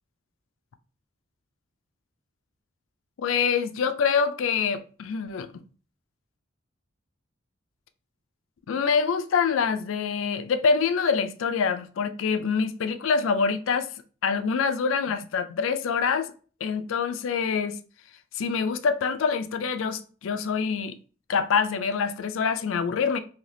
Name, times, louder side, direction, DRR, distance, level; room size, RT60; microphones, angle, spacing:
voice 1, 3.2-5.5 8.7-13.9 14.2-16.3 16.6-17.8 18.3-21.0 21.3-23.2, left 5 dB, 75° left, 0.4 m, -25 dB
2.8 x 2.6 x 3.3 m
head